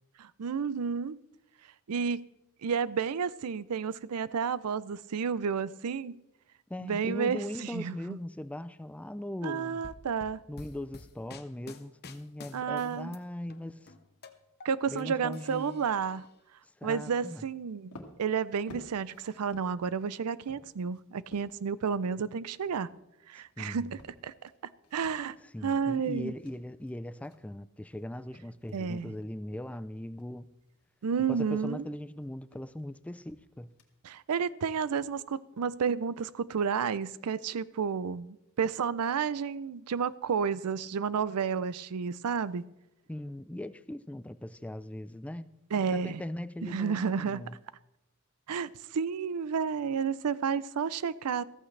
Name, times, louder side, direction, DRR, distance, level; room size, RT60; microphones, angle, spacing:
voice 1, 0.2-1.2 1.9-2.2 2.6-6.2 6.8-8.2 9.4-10.4 12.5-13.1 14.6-16.3 16.8-22.9 23.3-24.3 24.9-25.4 25.6-26.3 28.7-29.1 31.0-31.8 34.0-42.6 45.7-46.2 46.6-47.5 48.5-51.4, right 6 dB, 85° right, 0.5 m, -31 dB
voice 2, 6.7-9.8 10.5-13.9 14.9-15.9 16.8-17.5 23.6-23.9 25.4-30.5 31.3-33.7 43.1-45.5 45.9-47.6, left 1 dB, 5° left, 0.3 m, -39 dB
sound 1, 9.8-13.2 13.5-15.0 15.3-16.2, left 3 dB, 45° left, 0.9 m, -50 dB
sound 2, 17.7-28.8 29.1-29.6 29.9-34.2, left 1 dB, 75° left, 1.8 m, -55 dB
14.5 x 14.0 x 3.3 m
head